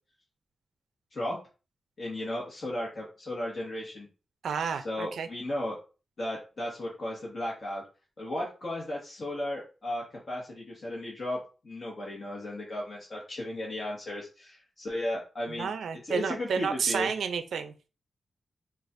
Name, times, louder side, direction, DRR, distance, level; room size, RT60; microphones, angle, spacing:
voice 1, 2.0-4.1 4.8-5.8 6.2-7.8 8.2-11.4 11.6-15.7 16.0-17.1, left 1 dB, 50° left, 1.3 m, -35 dB
voice 2, 4.4-5.3 15.5-17.9, right 6 dB, 85° right, 0.4 m, -31 dB
4.9 x 2.4 x 2.5 m
cardioid pair, 80°, 0 cm